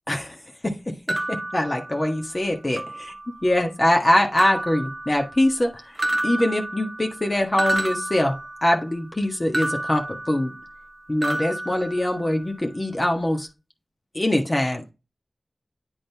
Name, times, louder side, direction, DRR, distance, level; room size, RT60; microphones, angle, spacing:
voice 1, 0.1-0.4 0.6-3.1 3.4-5.9 6.2-8.3 8.6-10.5 11.1-13.5 14.1-14.9, left 1 dB, 40° left, 3 dB, 1.4 m, -23 dB
sound 1, 1.1-2.4 2.8-3.5 4.4-5.6 6.0-8.9 9.5-10.9 11.2-12.5, right 1 dB, 40° right, 0.9 m, -30 dB
9.1 x 3.8 x 3.4 m, 0.27 s
wide cardioid pair, 50°, 0 cm